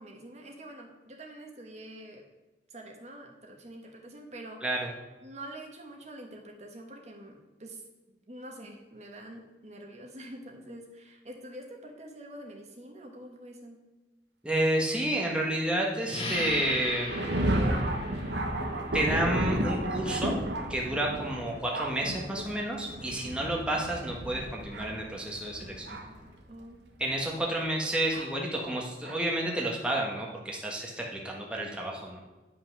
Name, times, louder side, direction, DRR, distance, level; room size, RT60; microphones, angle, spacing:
voice 1, 0.0-2.2 2.7-4.7 5.2-7.8 8.3-13.8 26.4-26.8, right 1 dB, 40° right, 2 dB, 1.4 m, -46 dB
voice 2, 14.4-17.2 18.9-20.3 20.7-26.0 27.0-32.2, right 1 dB, 5° right, -2 dB, 1.4 m, -30 dB
sound 1, 16.1-26.4, left 1 dB, 30° left, 1.8 m, -42 dB
Thunder, 16.3-26.2 27.0-27.1 28.1-28.3 29.0-29.2, right 1 dB, 80° right, 1.2 m, -33 dB
10.5 x 5.8 x 6.0 m, 1.2 s
head